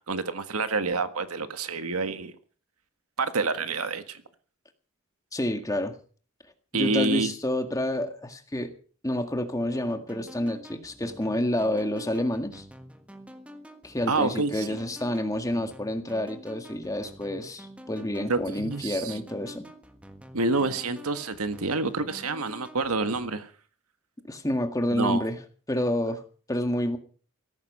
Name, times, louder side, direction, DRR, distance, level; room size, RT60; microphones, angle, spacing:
voice 1, 0.0-2.3 3.2-4.2 6.7-7.3 14.1-14.8 18.3-19.2 20.3-23.5 24.9-25.3, right 3 dB, 80° right, 9 dB, 1.6 m, -28 dB
voice 2, 5.3-6.0 6.7-8.7 9.0-12.6 13.8-19.6 24.3-25.4 25.7-26.2 26.5-27.0, left 1 dB, 15° left, 6 dB, 1.9 m, -29 dB
sound 1, 9.7-23.2, equal, 5° right, 1.5 m, -48 dB
17.0 x 14.5 x 5.5 m, 0.41 s
head